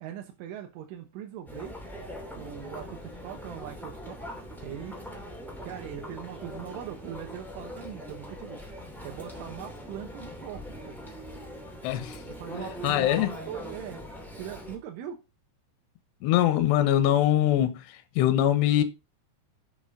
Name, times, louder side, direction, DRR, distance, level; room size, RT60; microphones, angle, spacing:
voice 1, 0.0-1.8 2.4-4.2 4.6-5.0 5.6-8.6 9.0-11.0 12.3-14.1 14.4-15.2, right 10 dB, 85° right, 3.7 m, -41 dB
Chatter, 1.4-14.7, equal, 5° left, 0.3 m, -41 dB
voice 2, 11.8-12.2 12.8-13.3 16.2-18.8, left 12 dB, 75° left, 3.0 m, -23 dB
7.7 x 7.0 x 5.0 m
omnidirectional pair, 5.5 m